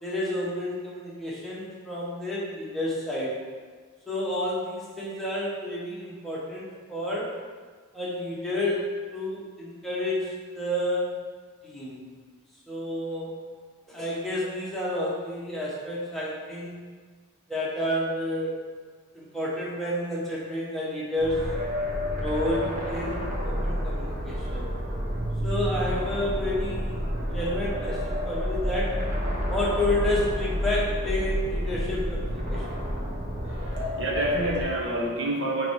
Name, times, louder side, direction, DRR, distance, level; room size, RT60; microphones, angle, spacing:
voice 1, 0.0-3.4 4.1-7.3 7.9-11.2 11.6-12.0 12.7-13.3 13.9-16.7 17.5-18.6 19.1-21.5 22.2-24.6 25.4-27.0 27.3-29.0 29.5-32.6, left 1 dB, ahead, -7 dB, 1.3 m, -30 dB
sound 1, 21.2-34.6, equal, 35° right, 1.1 m, -29 dB
voice 2, 33.4-35.7, right 1 dB, 60° right, -1 dB, 1.1 m, -28 dB
9.0 x 3.3 x 4.8 m, 1.6 s
head